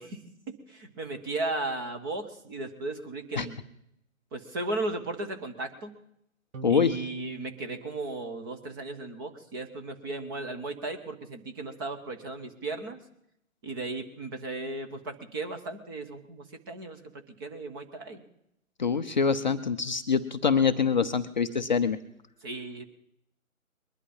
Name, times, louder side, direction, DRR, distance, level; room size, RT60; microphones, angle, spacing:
voice 1, 0.0-3.6 4.3-5.9 6.7-13.0 13.6-18.2 22.4-22.8, right 2 dB, 15° right, 5 dB, 0.9 m, -36 dB
sound 1, 6.5-9.1, right 5 dB, 70° right, 1.2 m, -46 dB
voice 2, 6.6-7.0 18.8-22.0, left 6 dB, 35° left, 8 dB, 0.6 m, -25 dB
21.5 x 11.0 x 5.5 m, 0.78 s
figure-of-eight pair, 145°, 41 cm